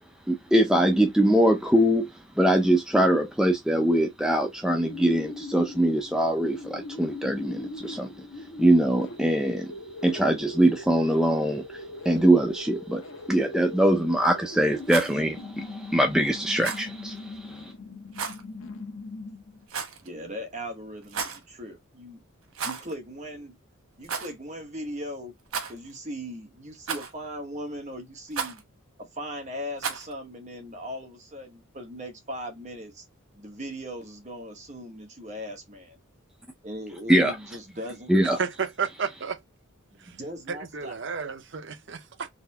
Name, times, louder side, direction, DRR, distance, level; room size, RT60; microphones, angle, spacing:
voice 1, 0.3-2.1 2.4-8.1 8.6-9.7 10.0-13.0 13.3-17.7 37.1-37.3 38.1-38.4, right 1 dB, 5° right, 0.5 m, -22 dB
sound 1, 4.8-19.6, left 2 dB, 75° left, 1.1 m, -41 dB
Rattle, 14.8-15.2 16.6-16.9 18.1-18.4 19.7-20.1 21.0-21.4 22.5-23.0 23.2-23.3 24.0-24.3 25.5-26.0 26.9-27.3 28.3-28.6 29.8-30.1, right 6 dB, 85° right, 1.1 m, -33 dB
voice 2, 20.0-22.2 22.6-23.6 24.0-25.3 25.7-28.6 29.1-33.0 33.3-36.0 36.6-38.4 39.9-40.9, equal, 35° right, 1.2 m, -38 dB
voice 3, 38.4-39.4 40.0-40.1 40.5-42.3, right 6 dB, 55° right, 0.6 m, -32 dB
4.1 x 3.2 x 2.8 m
head